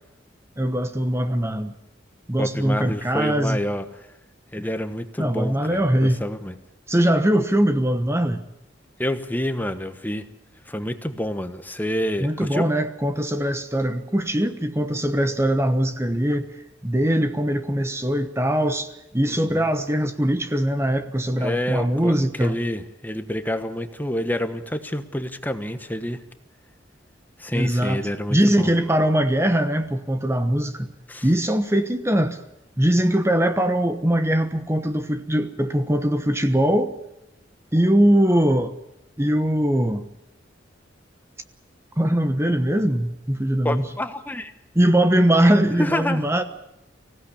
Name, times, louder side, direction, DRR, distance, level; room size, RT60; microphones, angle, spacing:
voice 1, 0.6-1.7 2.3-3.6 4.6-4.7 5.2-6.2 6.9-8.4 12.2-16.5 16.8-22.5 27.5-28.0 28.3-30.9 31.2-32.4 32.8-36.9 37.7-38.7 39.2-40.0 42.0-43.8 44.7-46.4, right 1 dB, 15° right, 1.2 m, -21 dB
voice 2, 2.4-4.1 4.5-6.5 9.0-10.2 10.6-12.7 19.3-19.7 21.4-26.2 27.4-28.7 31.1-31.3 43.6-44.5 45.8-46.2, left 1 dB, 10° left, 1.2 m, -28 dB
25.0 x 16.5 x 8.6 m
head